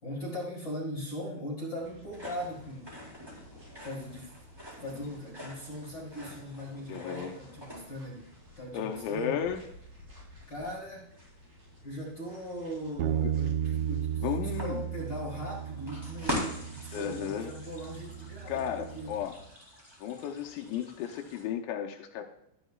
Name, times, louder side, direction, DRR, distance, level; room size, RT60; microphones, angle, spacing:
voice 1, 0.0-2.9 3.8-4.3 4.8-8.3 8.5-9.4 10.5-11.0 11.8-13.6 13.9-19.2 20.0-20.2, equal, 50° left, -5 dB, 1.3 m, -39 dB
sound 1, 1.8-19.5, left 1 dB, 35° right, 5.4 m, -55 dB
sound 2, 2.1-21.4, left 1 dB, 5° right, 2.7 m, -44 dB
voice 2, 6.9-7.3 8.7-9.6 13.2-13.3 14.2-14.8 16.9-17.5 18.5-19.3 20.0-22.2, left 8 dB, 80° left, 3 dB, 3.1 m, -34 dB
Bass guitar, 13.0-19.2, right 10 dB, 80° right, 2.6 m, -34 dB
13.0 x 12.0 x 2.4 m, 0.73 s
omnidirectional pair, 5.4 m